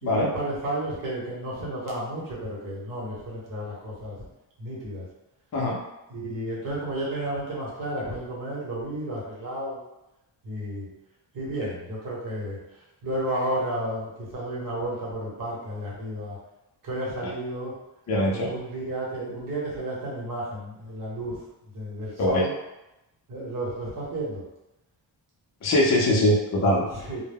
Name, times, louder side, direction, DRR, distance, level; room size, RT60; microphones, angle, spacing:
voice 1, 0.0-4.3 4.6-5.0 6.1-9.8 10.4-10.9 11.3-12.6 13.0-16.4 16.8-17.7 18.3-21.4 21.7-22.5 23.3-24.4 26.9-27.2, right 1 dB, 50° right, -5 dB, 1.1 m, -32 dB
voice 2, 18.1-18.5 22.2-22.4 25.6-26.8, left 1 dB, 40° left, -3 dB, 0.6 m, -22 dB
2.1 x 2.1 x 3.4 m, 0.93 s
wide cardioid pair, 145°, 42 cm